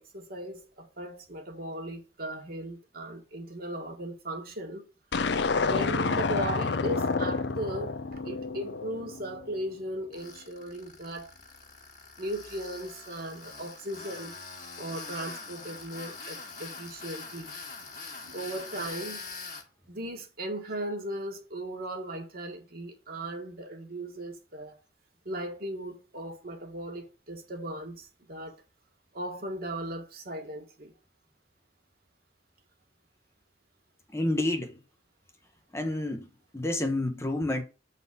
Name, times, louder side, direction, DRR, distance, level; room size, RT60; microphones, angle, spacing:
voice 1, 0.0-4.9 5.7-7.9 8.3-11.3 12.2-14.3 14.8-17.5 18.2-19.2 19.9-24.8 25.3-28.5 29.1-30.9, right 1 dB, 55° right, 1.7 m, -37 dB
sound 1, 5.1-9.5, left 4 dB, 70° left, 0.6 m, -29 dB
Tools, 10.1-19.6, left 4 dB, 45° left, 1.8 m, -43 dB
voice 2, 34.1-34.8 35.7-37.6, left 1 dB, 15° left, 0.8 m, -29 dB
7.2 x 4.2 x 5.3 m
head